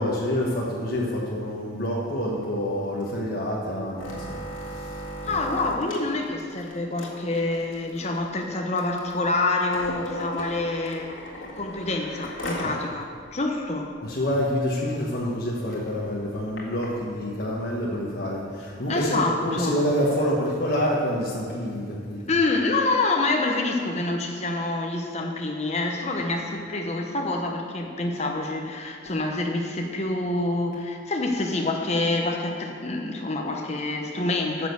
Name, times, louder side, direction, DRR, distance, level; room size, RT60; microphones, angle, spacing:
voice 1, 0.0-4.4 4.7-5.0 5.3-5.4 12.6-12.7 14.0-22.2, equal, 50° left, -5 dB, 1.4 m, -27 dB
sound 1, 4.0-12.8 13.2-13.3 13.6-13.9 14.3-14.4 14.7-15.0 15.6-16.9 17.6-17.7, equal, 85° left, 1.9 m, -37 dB
voice 2, 5.2-11.1 11.6-13.9 18.9-19.8 22.3-34.7, left 2 dB, 35° left, 2 dB, 0.9 m, -27 dB
9.9 x 6.5 x 6.9 m, 2.1 s
head